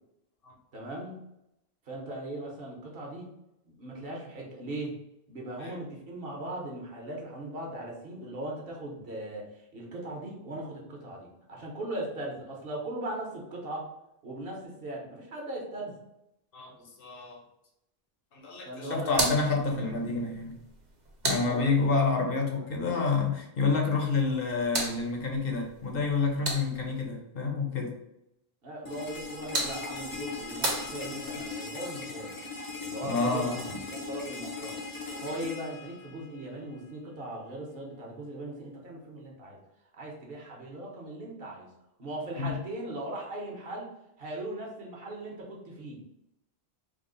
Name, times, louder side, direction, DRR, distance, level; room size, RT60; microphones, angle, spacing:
voice 1, 0.7-1.2 1.9-3.3 3.6-4.9 5.3-13.9 14.2-16.0 18.6-19.3 21.4-21.9 28.6-32.4 32.8-34.8 35.2-39.6 39.9-41.7 42.0-43.9 44.2-46.0, right 1 dB, 65° right, -1 dB, 1.1 m, -39 dB
voice 2, 16.5-17.4 18.3-20.6 21.2-27.9 33.0-33.8 42.4-42.5, left 4 dB, 65° left, 1 dB, 0.9 m, -28 dB
sound 1, 19.1-22.1 24.1-27.1 29.0-31.5, right 2 dB, 50° right, 0.8 m, -36 dB
sound 2, 28.9-36.8, left 4 dB, 35° left, 0.3 m, -39 dB
3.6 x 2.0 x 3.7 m, 0.85 s
omnidirectional pair, 1.1 m